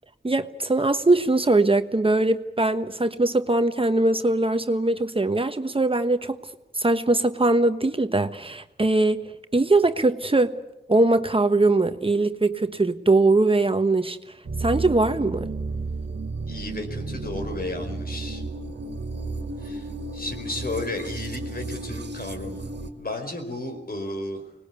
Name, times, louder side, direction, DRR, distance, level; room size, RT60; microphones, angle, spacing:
voice 1, 0.2-6.4 6.7-9.2 9.5-10.5 10.9-14.2 14.6-15.5, right 2 dB, 30° right, 1.2 m, -21 dB
sound 1, 14.4-22.9, right 3 dB, 75° right, 2.0 m, -33 dB
voice 2, 16.5-18.4 19.6-22.7 22.9-24.4, left 2 dB, 60° left, 4.7 m, -33 dB
25.0 x 20.0 x 8.4 m
cardioid pair, 55°, 18 cm